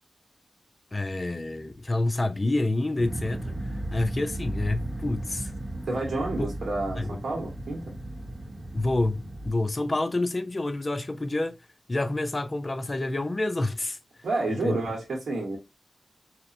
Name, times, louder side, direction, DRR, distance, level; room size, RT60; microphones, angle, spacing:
voice 1, 0.9-3.4 3.9-5.5 7.0-7.2 8.7-11.6 11.9-14.0 14.6-14.8, left 2 dB, 30° left, 0.4 m, -28 dB
sound 1, 3.0-9.5, right 1 dB, 40° right, 0.9 m, -35 dB
voice 2, 5.9-7.9 9.8-10.0 14.2-15.6, right 2 dB, 75° right, 0.9 m, -30 dB
2.8 x 2.0 x 2.5 m
wide cardioid pair, 125°, 0 cm